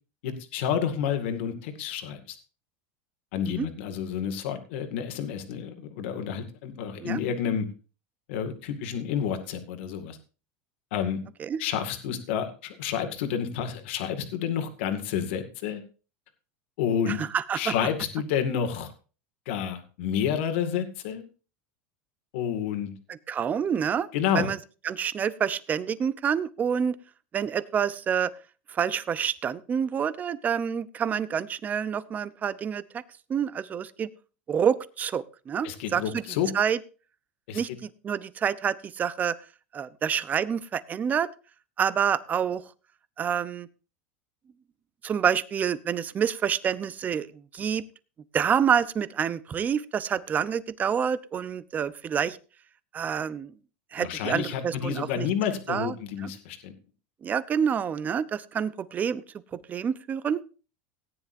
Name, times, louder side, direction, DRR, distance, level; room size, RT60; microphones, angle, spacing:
voice 1, 0.2-2.4 3.3-7.7 8.3-10.2 10.9-11.2 11.6-15.8 16.8-17.2 17.5-18.9 19.5-21.2 22.3-22.9 24.1-24.5 35.6-36.5 37.5-37.8 54.0-56.7, left 8 dB, 75° left, 6 dB, 2.3 m, -29 dB
voice 2, 17.1-17.7 23.3-24.1 24.3-24.6 24.8-26.9 27.3-28.3 28.7-32.8 33.3-34.1 34.5-36.2 36.5-36.8 37.5-37.7 38.0-39.4 39.7-41.3 41.8-42.6 43.2-43.7 45.0-47.3 47.5-47.8 48.3-52.4 52.9-53.5 53.9-55.3 55.7-55.9 57.2-59.2 59.5-60.4, right 8 dB, 25° right, 16 dB, 0.8 m, -27 dB
18.0 x 9.9 x 2.7 m, 0.34 s
supercardioid pair, 130°, 6 cm